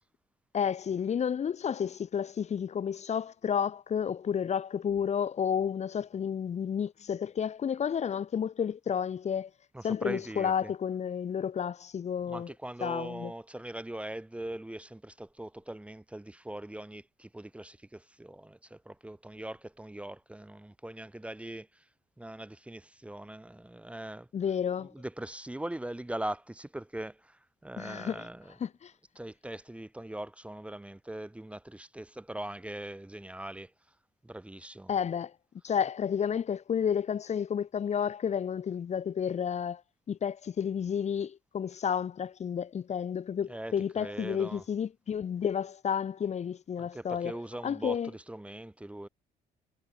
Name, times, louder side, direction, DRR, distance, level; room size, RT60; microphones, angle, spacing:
voice 1, 0.5-9.5 9.8-12.5 12.8-13.3 24.3-24.9 27.8-28.3 28.6-28.9 34.9-35.3 35.6-39.8 40.1-47.4 47.6-48.1, left 8 dB, 40° left, 2.1 m, -31 dB
voice 2, 9.7-10.7 12.3-21.8 22.2-24.3 24.8-28.5 29.2-33.7 34.2-34.9 43.5-44.6 46.8-49.1, right 1 dB, 5° right, 1.7 m, -41 dB
cardioid pair, 110°, 17 cm